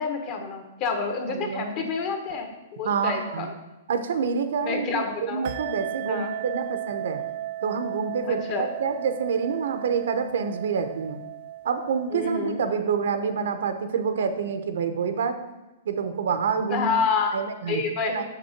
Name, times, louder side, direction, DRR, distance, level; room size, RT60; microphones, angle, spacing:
voice 1, 0.0-3.5 4.6-5.4 6.1-6.4 8.2-8.7 12.1-12.6 16.7-17.4 17.7-18.2, left 4 dB, 30° left, 4 dB, 1.1 m, -28 dB
voice 2, 1.3-1.9 2.8-3.5 3.9-7.2 7.6-8.4 8.8-11.2 11.6-15.3 15.9-16.9 17.3-17.8 18.1-18.2, right 6 dB, 75° right, 8 dB, 0.9 m, -27 dB
sound 1, 5.4-13.6, right 13 dB, 45° right, 0.3 m, -36 dB
6.0 x 6.0 x 5.9 m, 1.0 s
hypercardioid pair, 165°, 0 cm